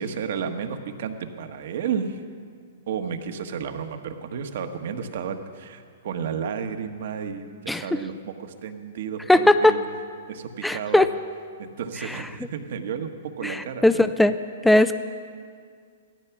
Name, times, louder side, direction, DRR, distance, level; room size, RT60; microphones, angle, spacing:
voice 1, 0.0-2.2 2.9-9.8 10.3-11.0 11.6-14.1, right 7 dB, 65° right, 7 dB, 1.4 m, -32 dB
voice 2, 9.3-9.7 10.6-11.1 12.1-12.2 13.4-14.3 14.6-15.0, left 1 dB, 5° left, 11 dB, 0.5 m, -18 dB
16.5 x 13.5 x 6.0 m, 2.1 s
hypercardioid pair, 130°, 0 cm